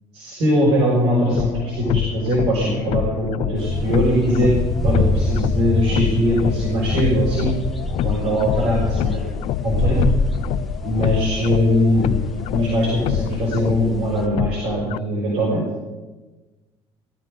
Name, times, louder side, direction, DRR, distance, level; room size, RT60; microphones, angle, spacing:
voice 1, 0.1-4.6 4.8-7.5 8.0-9.2 9.6-10.0 10.8-12.1 12.5-15.6, equal, 70° right, -5 dB, 6.0 m, -20 dB
sound 1, 1.3-15.0, left 13 dB, 65° left, 0.4 m, -27 dB
sound 2, 3.6-14.3, left 2 dB, ahead, 1.5 m, -26 dB
19.5 x 13.0 x 4.0 m, 1.2 s
cardioid pair, 150°, 11 cm